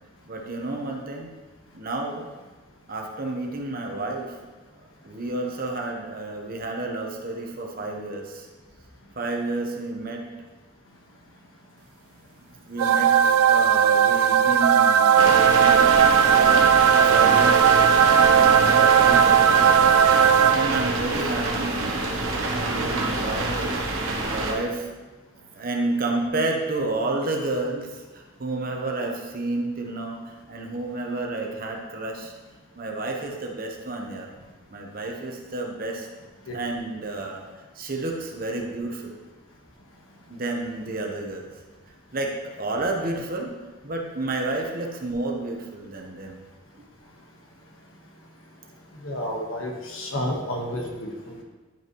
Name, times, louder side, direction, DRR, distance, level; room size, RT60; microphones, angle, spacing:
voice 1, 0.3-1.4 1.7-2.3 2.9-4.4 5.0-8.5 9.2-10.3 12.7-17.7 18.0-19.8 20.5-22.0 22.3-23.5 24.2-24.9 25.5-32.3 32.8-34.3 34.7-36.1 36.5-37.4 37.7-39.1 40.3-41.5 42.1-43.5 43.8-46.4, right 2 dB, 45° right, 1 dB, 1.0 m, -30 dB
sound 1, 12.8-21.0, right 8 dB, 85° right, 0.3 m, -17 dB
sound 2, 15.2-24.5, right 2 dB, 70° right, 1.0 m, -26 dB
voice 2, 49.0-51.4, left 1 dB, 70° left, 0 dB, 1.4 m, -31 dB
10.5 x 5.5 x 3.1 m, 1.3 s
head